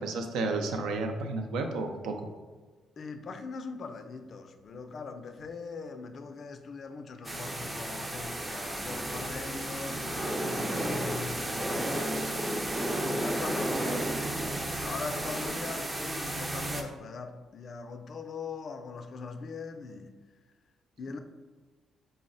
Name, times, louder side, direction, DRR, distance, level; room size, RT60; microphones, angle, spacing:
voice 1, 0.0-2.3, right 3 dB, 85° right, 0.4 m, -32 dB
voice 2, 3.0-12.7 13.0-20.1 21.0-21.2, left 4 dB, 50° left, 0.3 m, -41 dB
sound 1, 7.2-16.8, right 1 dB, 15° right, 0.4 m, -33 dB
3.9 x 2.0 x 3.8 m
cardioid pair, 90°, 0 cm